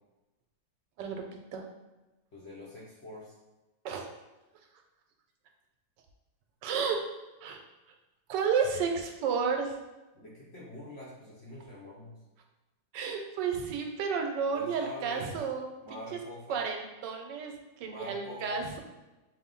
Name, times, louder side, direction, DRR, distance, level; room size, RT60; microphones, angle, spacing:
voice 1, 2.3-3.4 10.1-12.2 14.5-15.4 15.8-16.6 17.8-18.6, left 1 dB, 55° left, -5 dB, 0.8 m, -44 dB
voice 2, 6.6-7.0 7.4-7.6 8.3-9.7 12.9-15.7 16.5-18.8, right 6 dB, 80° right, 3 dB, 1.2 m, -31 dB
5.4 x 2.1 x 3.7 m, 1.1 s
omnidirectional pair, 1.9 m